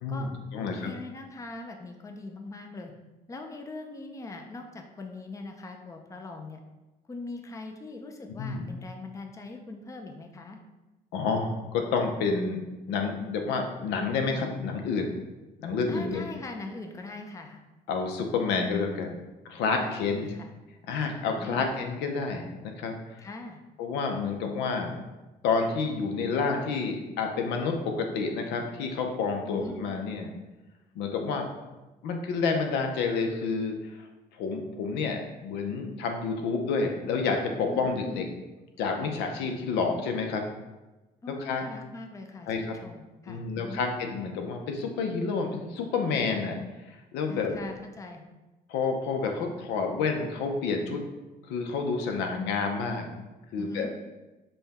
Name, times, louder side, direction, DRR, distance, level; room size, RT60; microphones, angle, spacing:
voice 1, 0.0-0.9 8.4-8.7 11.1-12.6 12.9-15.1 15.6-16.2 17.9-19.1 19.5-20.3 20.9-22.9 23.8-24.9 25.4-30.3 31.0-31.5 32.0-33.7 34.4-38.2 38.8-40.4 41.4-41.6 42.5-42.7 43.3-46.6 47.1-47.5 48.7-51.0 51.5-53.1 53.5-53.9, left 4 dB, 85° left, 3 dB, 0.7 m, -29 dB
voice 2, 0.6-2.9 3.3-6.6 7.1-10.6 15.9-17.6 19.8-20.5 21.4-21.6 23.2-23.6 29.4-29.8 37.7-38.2 41.2-43.8 47.3-48.2 53.6-53.9, left 3 dB, 20° left, 4 dB, 0.5 m, -41 dB
5.5 x 2.3 x 4.1 m, 1.1 s
cardioid pair, 110°, 17 cm